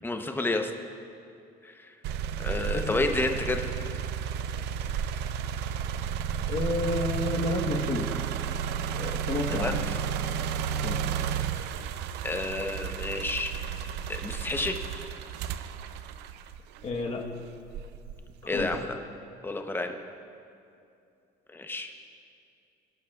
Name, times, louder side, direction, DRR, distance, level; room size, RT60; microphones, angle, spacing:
voice 1, 0.0-0.7 1.6-1.9 2.4-3.7 9.5-9.7 12.2-13.5 14.2-14.8 18.5-19.0 19.4-20.0 21.5-21.9, left 2 dB, 10° left, 5 dB, 0.8 m, -30 dB
sound 1, 2.0-17.1 17.7-18.9, right 8 dB, 85° right, 0.5 m, -32 dB
voice 2, 2.7-3.0 6.5-8.1 9.0-9.8 10.8-11.0 16.8-17.2 18.5-18.7, left 3 dB, 40° left, 1 dB, 1.2 m, -30 dB
19.5 x 11.5 x 2.4 m, 2.6 s
cardioid pair, 110°, 17 cm